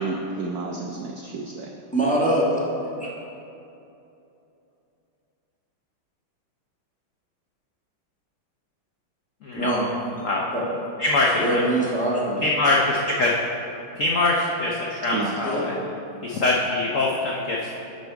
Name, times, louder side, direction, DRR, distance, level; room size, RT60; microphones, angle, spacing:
voice 1, 0.0-1.7 15.1-15.9, right 3 dB, 90° right, 0 dB, 0.8 m, -31 dB
voice 2, 1.9-2.6 3.0-3.1 9.5-9.9 10.5-10.6 11.4-12.5 15.4-15.6, right 1 dB, 5° left, -6 dB, 0.8 m, -23 dB
voice 3, 9.4-9.7 10.2-10.4 11.0-11.6 12.4-13.3 14.0-15.7 16.2-17.8, left 2 dB, 70° left, -2 dB, 0.7 m, -23 dB
9.5 x 5.4 x 4.6 m, 2.8 s
omnidirectional pair, 2.3 m